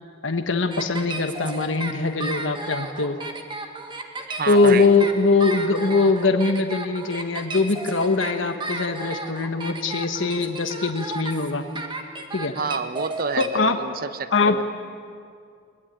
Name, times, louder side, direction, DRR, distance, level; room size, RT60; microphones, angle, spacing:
voice 1, 0.2-3.2 4.5-11.6 12.3-12.5 13.4-13.8 14.3-14.6, left 3 dB, 80° left, 6 dB, 1.3 m, -22 dB
sound 1, 0.7-13.5, right 2 dB, 25° right, 1.8 m, -33 dB
voice 2, 4.3-4.9 12.6-14.6, right 5 dB, 50° right, 12 dB, 0.9 m, -29 dB
22.5 x 21.0 x 9.0 m, 2.3 s
head